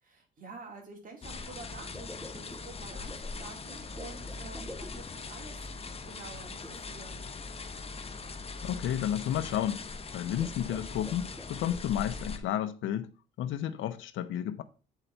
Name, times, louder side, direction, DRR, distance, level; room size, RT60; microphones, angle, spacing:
voice 1, 0.0-5.7 6.1-7.2, right 3 dB, 45° right, 2.6 m, -48 dB
sound 1, 1.2-12.4, left 4 dB, 30° left, 0.9 m, -41 dB
sound 2, 1.9-5.4 6.6-7.3 8.0-8.1 8.6-8.9 9.5-9.9 10.2-11.8, left 1 dB, ahead, 0.9 m, -49 dB
voice 2, 8.6-9.8 10.1-13.1 13.4-14.6, left 10 dB, 75° left, 0.6 m, -32 dB
8.0 x 4.0 x 4.3 m
cardioid pair, 90°, 20 cm